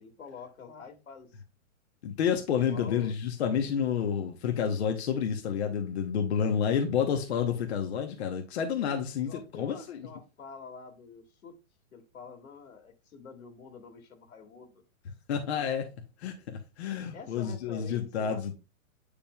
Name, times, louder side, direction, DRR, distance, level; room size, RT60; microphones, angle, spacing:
voice 1, 0.0-1.4 2.5-3.1 9.2-11.6 11.9-14.8 17.1-18.5, left 5 dB, 85° left, 2.3 m, -47 dB
voice 2, 2.0-10.1 15.3-15.9 16.2-18.5, left 7 dB, 50° left, 1.1 m, -29 dB
8.8 x 5.1 x 2.3 m
hypercardioid pair, 160°, 41 cm